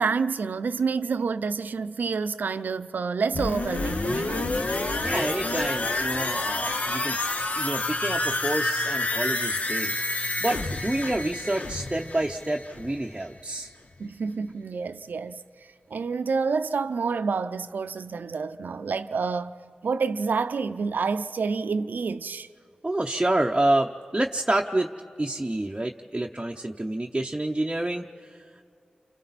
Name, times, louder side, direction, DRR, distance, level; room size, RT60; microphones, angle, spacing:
voice 1, 0.0-4.5 14.0-15.4 15.9-22.5, right 5 dB, 80° right, 0.5 m, -28 dB
sound 1, 3.3-13.1 13.4-13.5, left 2 dB, 55° left, 1.0 m, -28 dB
voice 2, 5.0-7.2 7.6-10.0 10.4-13.7 22.8-24.9 25.2-28.4, right 1 dB, 20° right, 0.8 m, -28 dB
29.5 x 25.0 x 4.2 m
cardioid pair, 45°, 3 cm